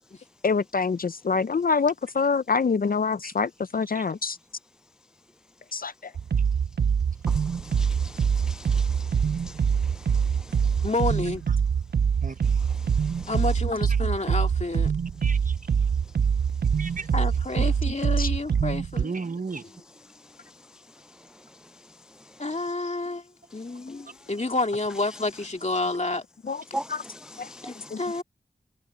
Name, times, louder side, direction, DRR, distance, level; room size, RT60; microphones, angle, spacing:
voice 1, 0.4-4.4 5.7-6.1 18.2-18.3 23.9-24.0 26.5-26.6 26.9-27.0 27.4-27.5 27.9-28.0, left 5 dB, 65° left, 0.5 m, -26 dB
sound 1, 6.2-19.0, right 7 dB, 80° right, 0.4 m, -24 dB
voice 2, 7.7-9.1 26.7-26.9 27.4-27.9, right 1 dB, 5° right, 0.3 m, -38 dB
voice 3, 10.8-11.5 13.3-14.9 17.1-19.1 19.7-19.8 22.4-23.3 23.5-26.2 27.6-28.2, left 2 dB, 45° left, 2.3 m, -29 dB
voice 4, 15.2-15.6 16.8-17.1 17.6-17.7 19.0-19.6, right 4 dB, 55° right, 0.9 m, -34 dB
wide cardioid pair, 50°, 16 cm